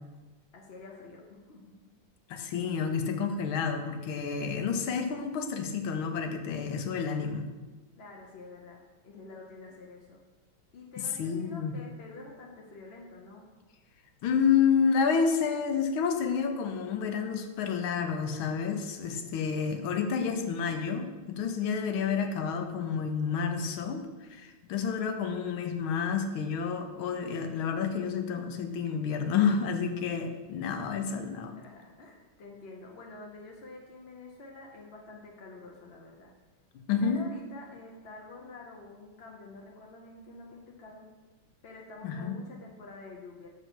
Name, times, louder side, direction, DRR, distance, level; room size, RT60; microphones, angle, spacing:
voice 1, 0.5-1.7 8.0-10.2 10.7-13.4 19.0-19.4 31.4-36.3 37.0-41.1 41.6-43.5, left 3 dB, 60° left, -1 dB, 0.6 m, -48 dB
voice 2, 2.3-7.5 11.2-11.7 14.2-31.6 36.9-37.2 42.0-42.4, left 6 dB, 80° left, 6 dB, 1.5 m, -29 dB
6.5 x 4.7 x 6.2 m, 1.2 s
omnidirectional pair, 2.3 m